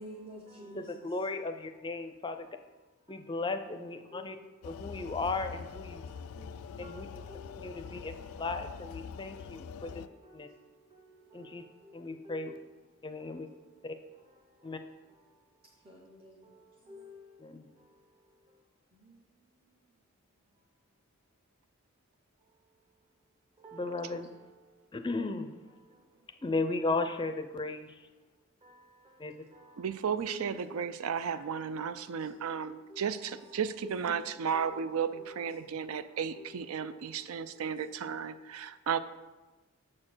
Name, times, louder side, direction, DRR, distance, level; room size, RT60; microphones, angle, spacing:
voice 1, 0.0-1.3 2.0-3.4 3.8-4.9 5.9-8.5 9.9-18.6 18.9-20.1 22.4-22.9 23.6-25.0 25.7-26.5 28.3-31.0 31.3-34.8 35.1-37.8 38.7-38.8, equal, 25° right, 0 dB, 0.7 m, -54 dB
voice 2, 0.7-2.5 3.1-4.4 4.6-6.0 6.8-7.1 7.6-8.1 8.4-10.0 10.3-10.5 11.3-11.6 11.9-12.5 13.0-13.5 13.8-14.0 14.6-14.8 17.4-17.7 23.7-24.3 24.9-25.5 26.4-28.1 29.2-29.3, left 3 dB, 20° left, 8 dB, 0.4 m, -35 dB
sound 1, 4.6-10.1, left 6 dB, 85° left, 0.3 m, -44 dB
voice 3, 29.8-39.0, right 7 dB, 80° right, 14 dB, 0.4 m, -34 dB
7.5 x 4.4 x 6.1 m, 1.2 s
head